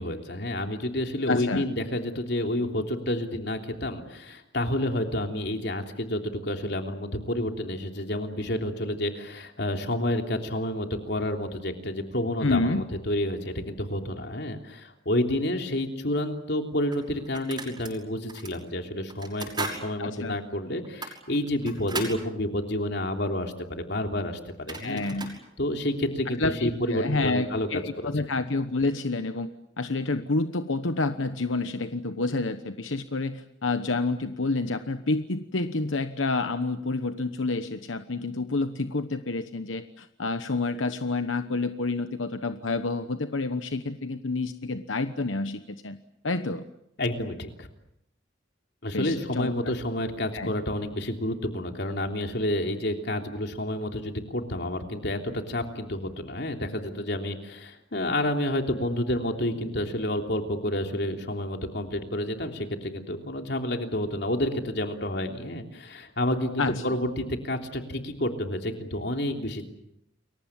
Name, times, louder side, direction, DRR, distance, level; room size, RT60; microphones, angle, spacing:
voice 1, 0.0-25.0 25.6-28.1 47.0-47.7 48.8-69.7, left 1 dB, 60° left, 4 dB, 3.3 m, -29 dB
voice 2, 1.3-1.6 12.4-12.9 20.0-20.4 24.8-25.4 26.4-29.5 29.8-46.0 46.2-46.6 48.9-49.6 50.3-50.5 66.6-66.8, left 3 dB, 85° left, 9 dB, 1.1 m, -28 dB
sound 1, 16.1-16.2 16.9-17.9 18.3-18.5 19.1-19.8 20.2-20.3 20.8-22.2 24.2-24.3 24.5-25.4, right 3 dB, 25° right, 6.1 m, -37 dB
29.5 x 23.0 x 7.4 m, 0.81 s
head